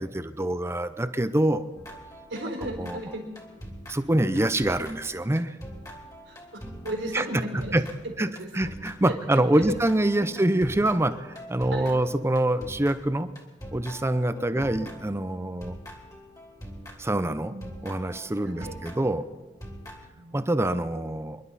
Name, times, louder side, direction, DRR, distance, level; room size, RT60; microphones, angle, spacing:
voice 1, 0.0-1.7 2.8-3.0 3.9-5.6 7.1-7.2 7.7-7.8 8.2-8.3 8.5-13.3 13.7-15.7 17.0-17.5 17.8-19.3 20.3-21.4, right 1 dB, 15° right, 11 dB, 0.7 m, -25 dB
sound 1, 1.8-17.2 17.6-20.1, equal, 20° left, 2.6 m, -43 dB
voice 2, 2.3-3.2 6.3-7.7 8.2-8.5 9.3-9.7 10.2-10.4 11.7-12.0 14.3-14.6 17.5-17.7 18.4-18.8 20.1-20.5, right 1 dB, 85° right, 1 dB, 4.0 m, -35 dB
27.5 x 11.5 x 4.2 m, 1.2 s
head